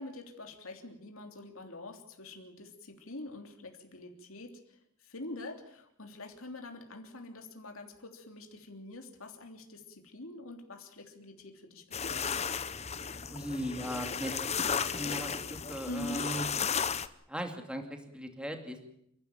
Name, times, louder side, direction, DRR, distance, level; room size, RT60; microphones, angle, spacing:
voice 1, 0.0-12.6 15.9-16.3, left 1 dB, 70° left, 4 dB, 3.2 m, -45 dB
sound 1, 11.9-17.1, left 6 dB, 30° left, 0.9 m, -34 dB
voice 2, 13.3-16.5 17.3-18.9, equal, 5° right, 5 dB, 2.5 m, -38 dB
29.5 x 11.5 x 9.0 m, 0.74 s
head